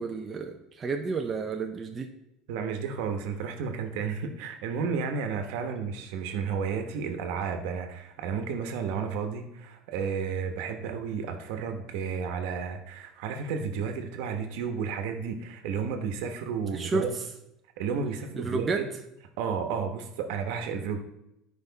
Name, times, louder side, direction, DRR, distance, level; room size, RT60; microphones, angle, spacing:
voice 1, 0.0-2.1 16.7-17.0 18.4-18.8, right 4 dB, 20° right, 3 dB, 0.5 m, -31 dB
voice 2, 2.5-17.1 17.8-18.9 19.4-21.0, right 6 dB, 65° right, 6 dB, 1.1 m, -32 dB
11.0 x 5.2 x 4.0 m, 0.86 s
cardioid pair, 175°, 0 cm